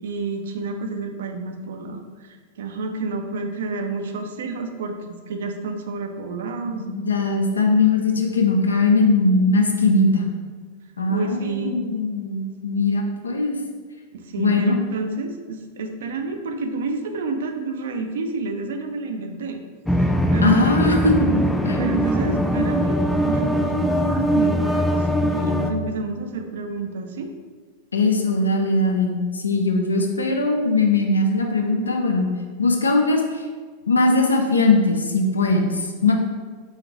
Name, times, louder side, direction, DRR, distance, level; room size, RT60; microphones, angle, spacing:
voice 1, 0.0-5.0 5.3-6.8 11.1-11.8 14.1-19.6 20.3-21.1 21.7-27.3, right 3 dB, 60° right, 5 dB, 0.4 m, -29 dB
voice 2, 6.9-10.3 11.0-13.6 14.4-14.7 20.4-21.3 21.7-21.8 27.9-32.3 32.6-33.4 33.9-36.1, left 3 dB, 75° left, 2 dB, 0.5 m, -20 dB
sound 1, 19.9-25.7, equal, 5° left, 0.3 m, -21 dB
4.0 x 3.7 x 3.3 m, 1.5 s
figure-of-eight pair, 90°, 0 cm